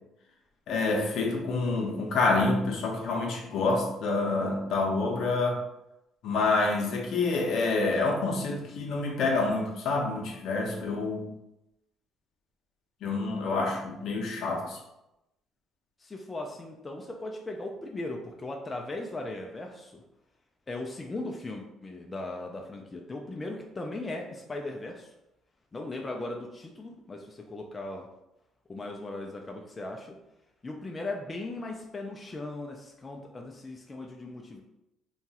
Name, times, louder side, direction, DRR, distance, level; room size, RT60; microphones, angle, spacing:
voice 1, 0.7-5.6 6.2-11.3 13.0-14.8, left 3 dB, 70° left, 0 dB, 0.6 m, -27 dB
voice 2, 16.0-20.0 20.7-25.1 25.7-28.1 28.7-30.2 30.6-34.6, left 2 dB, 25° left, 2 dB, 0.4 m, -38 dB
2.9 x 2.3 x 2.8 m, 0.89 s
cardioid pair, 90°, 0 cm